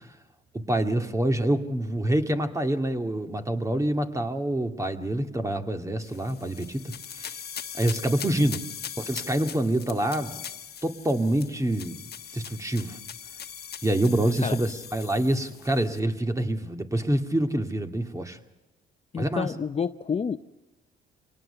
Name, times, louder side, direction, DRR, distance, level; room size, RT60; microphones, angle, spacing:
voice 1, 0.7-7.4 7.8-8.6 9.0-10.4 10.8-12.0 12.3-13.0 13.8-18.4 19.2-19.5, right 1 dB, 15° right, 6 dB, 2.2 m, -26 dB
sound 1, 6.0-16.0, left 8 dB, 55° left, 1.4 m, -40 dB
voice 2, 19.1-20.4, left 6 dB, 30° left, 10 dB, 0.7 m, -29 dB
25.5 x 19.0 x 6.9 m, 1.0 s
cardioid pair, 90°, 20 cm